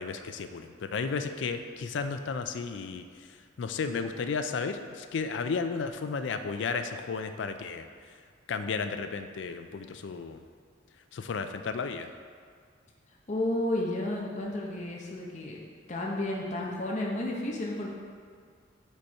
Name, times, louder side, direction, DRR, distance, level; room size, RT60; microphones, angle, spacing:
voice 1, 0.0-3.0 3.6-7.9 8.5-10.4 11.1-12.1, left 5 dB, 70° left, 8 dB, 0.4 m, -33 dB
voice 2, 13.3-15.6 15.9-17.9, left 1 dB, 40° left, -3 dB, 0.8 m, -32 dB
5.2 x 4.3 x 4.6 m, 2.1 s
head